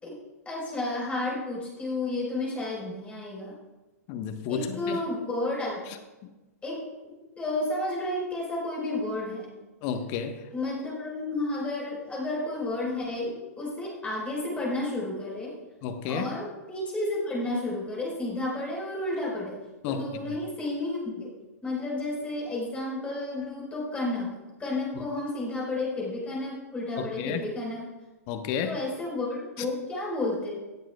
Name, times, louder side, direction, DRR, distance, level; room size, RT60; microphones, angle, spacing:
voice 1, 0.4-3.6 4.5-5.9 6.6-9.5 10.5-15.5 16.1-19.6 19.8-21.3 21.6-27.9 28.6-30.6, left 2 dB, 15° left, -4 dB, 4.7 m, -32 dB
voice 2, 4.1-5.0 9.8-10.4 15.8-16.3 19.8-20.3 27.0-27.4 28.3-28.8, left 7 dB, 40° left, 8 dB, 1.3 m, -31 dB
17.0 x 12.5 x 2.4 m, 1.1 s
figure-of-eight pair, 110°, 9 cm